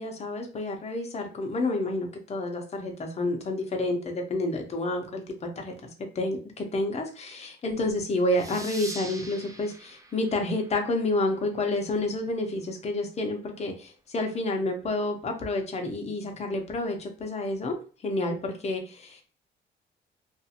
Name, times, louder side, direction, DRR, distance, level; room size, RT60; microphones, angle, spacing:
voice 1, 0.0-5.7 6.0-17.8 18.0-19.2, left 2 dB, 35° left, 3 dB, 0.7 m, -29 dB
sound 1, 8.3-11.6, right 2 dB, 15° right, 0.5 m, -43 dB
2.6 x 2.4 x 2.8 m, 0.38 s
cardioid pair, 90°, 20 cm